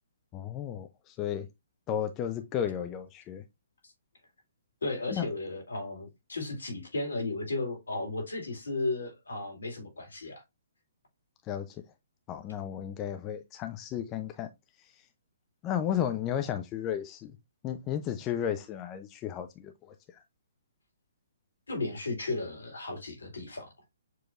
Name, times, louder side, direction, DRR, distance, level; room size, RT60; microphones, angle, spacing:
voice 1, 0.3-1.5 1.9-3.4 5.1-5.3 11.4-11.8 12.3-14.5 15.6-17.3 17.6-19.9, left 9 dB, 25° left, 0.5 m, -33 dB
voice 2, 4.8-10.4 21.7-23.7, left 2 dB, 75° left, 2.3 m, -34 dB
6.9 x 3.1 x 2.4 m
figure-of-eight pair, 130°, 0 cm